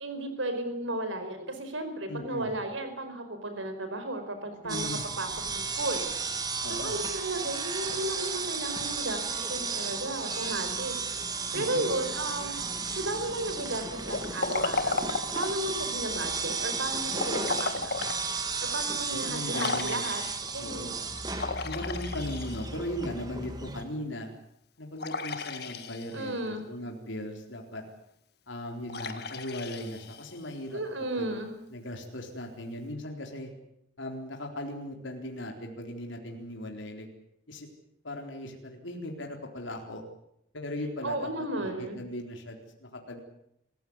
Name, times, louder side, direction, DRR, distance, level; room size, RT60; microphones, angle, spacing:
voice 1, 0.0-6.0 6.7-10.9 11.5-12.6 13.0-15.1 15.3-17.9 18.6-20.2 20.5-20.9 26.1-26.7 30.7-31.5 41.0-42.0, right 1 dB, 80° right, 8 dB, 5.0 m, -34 dB
voice 2, 2.1-2.6 4.6-5.0 6.6-7.0 11.5-11.9 19.1-20.1 20.6-20.9 21.6-24.3 24.8-27.8 28.5-30.8 31.2-31.3 31.7-33.5 34.0-37.1 37.5-37.7 38.0-40.0 40.5-41.5 41.7-43.2, left 1 dB, 75° left, 2 dB, 4.0 m, -38 dB
sound 1, 4.7-23.8, right 4 dB, 20° right, 2.2 m, -34 dB
Liquid, 14.1-15.7 17.1-18.2 18.7-18.8 19.5-20.5 21.3-23.0 25.0-26.3 28.9-30.5, left 3 dB, 55° left, 2.0 m, -34 dB
26.5 x 15.5 x 9.7 m, 0.79 s
head